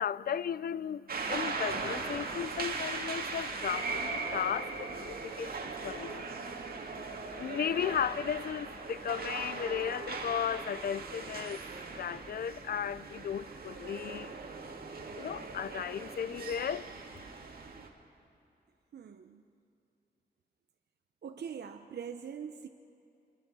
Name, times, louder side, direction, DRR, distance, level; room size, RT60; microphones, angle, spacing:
voice 1, 0.0-11.7 11.9-14.3 15.1-16.9, left 8 dB, 60° left, 0.5 m, -35 dB
sound 1, 1.1-17.9, right 4 dB, 60° right, 2.3 m, -39 dB
voice 2, 18.9-19.4 21.2-22.7, right 7 dB, 80° right, 0.8 m, -42 dB
26.0 x 23.5 x 5.5 m
wide cardioid pair, 145°, 17 cm